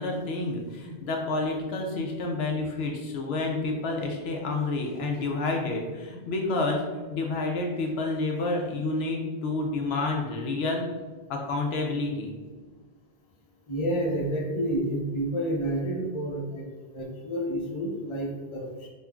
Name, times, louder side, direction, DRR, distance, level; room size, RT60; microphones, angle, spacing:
voice 1, 0.0-10.8 11.3-12.3, left 2 dB, 70° left, 1 dB, 0.8 m, -29 dB
voice 2, 13.7-16.6 16.9-18.9, right 1 dB, 35° left, -2 dB, 0.6 m, -29 dB
5.4 x 2.2 x 2.3 m, 1.3 s
omnidirectional pair, 1.1 m